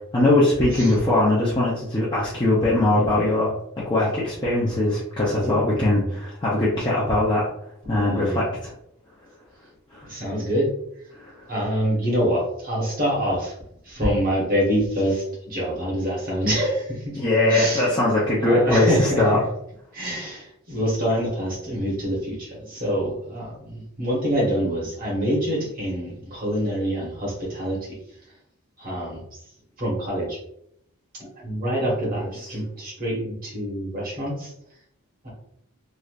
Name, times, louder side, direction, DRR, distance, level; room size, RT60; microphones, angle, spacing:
voice 1, 0.1-3.5 3.8-7.4 7.9-8.7 9.9-10.1 11.1-11.5 17.1-19.4, left 2 dB, 20° left, -8 dB, 0.5 m, -21 dB
voice 2, 2.9-3.2 5.4-5.6 7.9-8.4 10.0-10.7 11.5-13.5 13.8-17.2 17.5-17.9 18.4-19.4 19.9-28.0 28.8-29.4 29.8-30.4 31.2-34.5 35.2-35.3, equal, 40° right, -4 dB, 1.1 m, -26 dB
3.2 x 2.5 x 2.4 m, 0.75 s
head